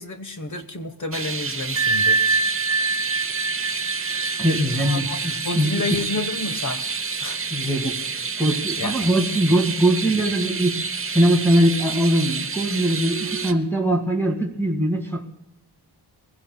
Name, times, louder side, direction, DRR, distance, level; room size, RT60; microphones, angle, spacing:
voice 1, 0.0-2.2 4.7-6.8 7.2-7.4 8.8-9.1, left 3 dB, 45° left, 9 dB, 1.3 m, -30 dB
sound 1, 1.1-13.5, right 5 dB, 30° right, 0.8 m, -29 dB
Bell, 1.7-7.2, right 3 dB, 15° right, 5.6 m, -26 dB
voice 2, 4.4-5.7 6.0-6.1 7.5-8.0 8.4-10.7 11.1-15.2, right 1 dB, 5° left, 4 dB, 2.0 m, -21 dB
22.0 x 16.0 x 2.3 m, 0.88 s
wide cardioid pair, 100°, 42 cm